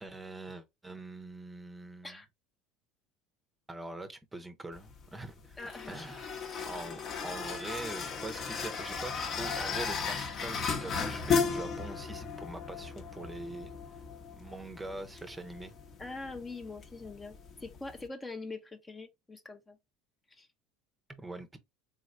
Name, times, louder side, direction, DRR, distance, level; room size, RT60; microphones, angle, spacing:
voice 1, 0.0-2.2 3.7-5.6 5.9-6.3 6.6-13.7 14.3-15.7 21.2-21.6, right 2 dB, 15° right, 0.7 m, -43 dB
sound 1, 4.7-18.1, left 5 dB, 45° left, 0.9 m, -36 dB
voice 2, 5.6-6.1 16.0-19.8 20.3-20.5, left 3 dB, 20° left, 0.6 m, -43 dB
3.8 x 3.1 x 2.5 m
hypercardioid pair, 80°, 0 cm